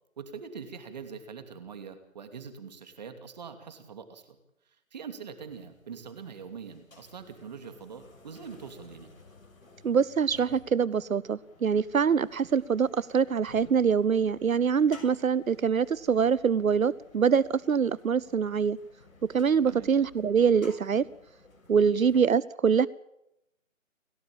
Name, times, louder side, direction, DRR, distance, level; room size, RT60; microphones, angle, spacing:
voice 1, 0.2-4.4 4.9-9.1 19.7-19.9 21.8-22.0, right 6 dB, 30° right, 8 dB, 2.8 m, -43 dB
sound 1, 5.5-22.2, left 3 dB, 80° left, 7.2 m, -55 dB
voice 2, 9.8-18.8 19.2-21.0 21.7-22.9, right 6 dB, 80° right, 21 dB, 0.8 m, -24 dB
29.5 x 12.5 x 8.9 m, 0.86 s
figure-of-eight pair, 165°, 40 cm